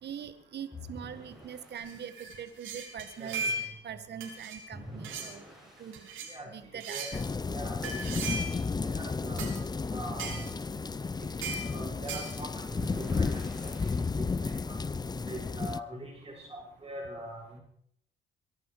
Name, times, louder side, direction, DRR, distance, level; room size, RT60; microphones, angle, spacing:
voice 1, 0.0-5.4 5.8-6.1 6.5-7.2, right 8 dB, 60° right, 11 dB, 1.7 m, -43 dB
sound 1, 0.7-2.1 4.7-6.2 8.7-10.1 12.7-14.3, equal, ahead, 7.6 m, -47 dB
sound 2, 1.7-3.9 4.2-4.6 5.0-5.3 5.9-6.3 6.8-7.2 7.8-8.6 9.4-9.6 10.2-10.5 11.4-11.7 12.1-12.3, right 3 dB, 85° right, 4.6 m, -37 dB
voice 2, 3.2-3.5 6.3-7.1 7.5-7.8 8.8-9.4 9.9-10.5 11.2-13.7 14.0-14.8 15.2-17.6, right 1 dB, 20° right, -6 dB, 6.1 m, -43 dB
sound 3, 7.1-15.8, left 4 dB, 20° left, 0.6 m, -33 dB
23.0 x 12.0 x 4.9 m, 0.67 s
cardioid pair, 90°, 20 cm